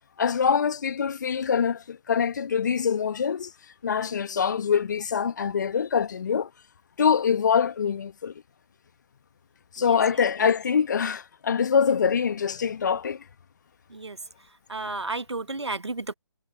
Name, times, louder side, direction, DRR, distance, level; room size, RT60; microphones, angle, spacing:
voice 1, 0.2-3.5 3.8-6.5 7.0-8.3 9.7-13.2, left 7 dB, 40° left, 1.6 m, -24 dB
voice 2, 14.7-16.1, right 3 dB, 70° right, 1.5 m, -32 dB
figure-of-eight pair, 145°, 15 cm